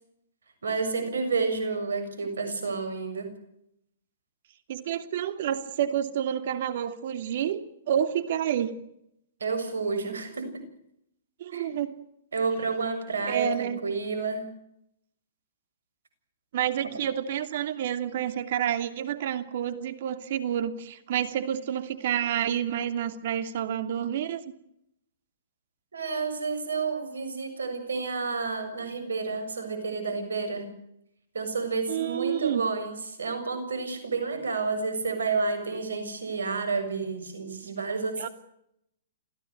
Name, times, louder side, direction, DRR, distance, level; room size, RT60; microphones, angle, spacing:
voice 1, 0.6-3.3 9.4-10.6 11.5-11.7 12.3-14.5 25.9-30.7 31.3-38.3, right 4 dB, 80° right, 8 dB, 7.0 m, -30 dB
voice 2, 4.7-7.6 7.9-8.7 11.4-11.9 13.3-13.8 16.5-24.4 31.9-32.6 38.2-38.3, right 10 dB, 55° right, 10 dB, 2.7 m, -29 dB
28.0 x 16.5 x 8.0 m, 0.78 s
hypercardioid pair, 125°, 0 cm